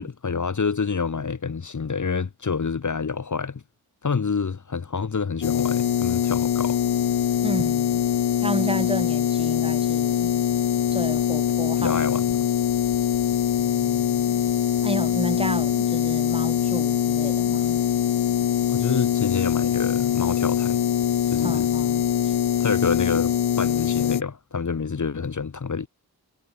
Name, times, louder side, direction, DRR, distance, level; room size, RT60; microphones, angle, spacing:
voice 1, 0.0-3.6 4.0-6.8 11.8-12.2 18.7-20.8 21.3-21.7 22.6-25.9, left 5 dB, 50° left, 2.1 m, -27 dB
sound 1, 5.4-24.2, left 10 dB, 80° left, 0.9 m, -23 dB
voice 2, 7.4-8.0 8.4-10.3 10.9-12.0 13.6-14.5 14.8-17.8 21.4-22.0, right 1 dB, 15° right, 5.7 m, -32 dB
wide cardioid pair, 80°, 38 cm